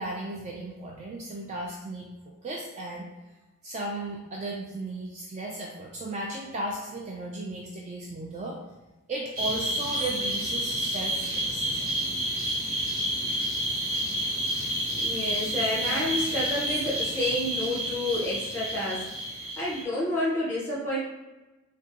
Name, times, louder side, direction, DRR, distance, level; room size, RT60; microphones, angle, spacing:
voice 1, 0.0-2.1 2.4-3.1 3.6-8.6 9.1-11.9, right 2 dB, 30° right, -2 dB, 0.3 m, -35 dB
sound 1, 9.4-19.8, right 1 dB, 75° right, 1.2 m, -30 dB
voice 2, 14.5-21.0, left 1 dB, 10° left, -8 dB, 1.4 m, -30 dB
3.6 x 2.2 x 2.7 m, 1.1 s
head